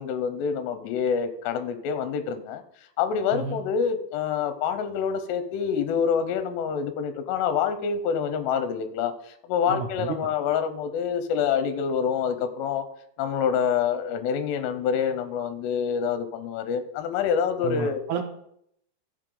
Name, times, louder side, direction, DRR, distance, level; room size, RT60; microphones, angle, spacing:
voice 1, 0.0-2.6 3.0-12.9 13.2-18.0, left 7 dB, 80° left, 10 dB, 2.9 m, -26 dB
voice 2, 9.7-10.2 17.6-18.2, right 6 dB, 75° right, 5 dB, 2.5 m, -31 dB
15.0 x 5.7 x 3.9 m, 0.72 s
omnidirectional pair, 5.0 m